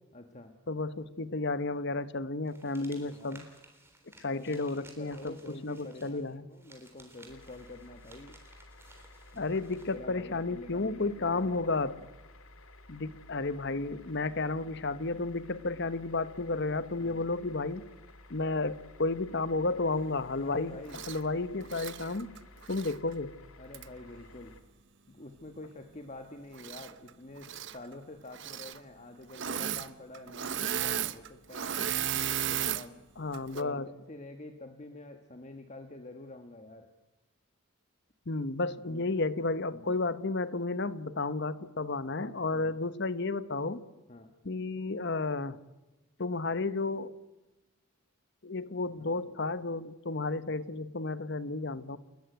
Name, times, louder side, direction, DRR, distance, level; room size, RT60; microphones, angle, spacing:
voice 1, 0.1-0.6 2.8-3.4 4.3-8.4 9.3-9.6 9.9-11.8 17.0-17.3 20.4-21.0 23.6-24.6 25.1-32.0 32.5-33.1 33.5-36.9 38.8-39.2 39.7-39.9 42.5-42.8 44.1-44.3 49.0-49.4, left 2 dB, 35° left, 6 dB, 1.3 m, -47 dB
voice 2, 0.7-3.4 4.2-5.3 5.6-6.4 9.4-12.0 12.9-17.8 18.3-20.7 21.1-22.3 22.7-23.3 33.2-33.9 38.3-43.8 44.4-45.6 46.2-47.2 48.4-52.0, left 3 dB, 55° left, 15 dB, 1.0 m, -32 dB
sound 1, 2.5-10.0, right 2 dB, 10° right, 3.7 m, -57 dB
sound 2, 7.3-24.6, left 2 dB, 75° left, 2.1 m, -54 dB
Engine / Mechanisms, 20.9-21.2 21.6-23.0 23.7-23.9 26.5-27.1 27.4-27.8 28.3-28.8 29.3-29.9 30.1-32.9 33.3-33.6, right 9 dB, 55° right, 0.8 m, -34 dB
29.5 x 13.5 x 9.3 m, 1.1 s
head